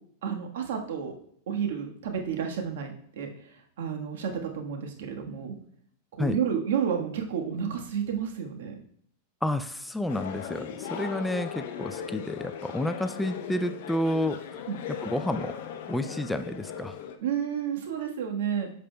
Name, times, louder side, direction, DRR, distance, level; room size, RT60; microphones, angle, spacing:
voice 1, 0.2-1.2 1.5-5.6 6.1-8.7 14.7-14.8 17.2-18.7, right 7 dB, 75° right, 3 dB, 1.4 m, -31 dB
voice 2, 9.4-14.6 15.0-15.6 15.9-17.0, left 1 dB, 5° left, 10 dB, 0.3 m, -30 dB
sound 1, 10.1-17.2, left 8 dB, 65° left, 0.8 m, -38 dB
8.6 x 6.7 x 2.3 m, 0.64 s
supercardioid pair, 140°, 0 cm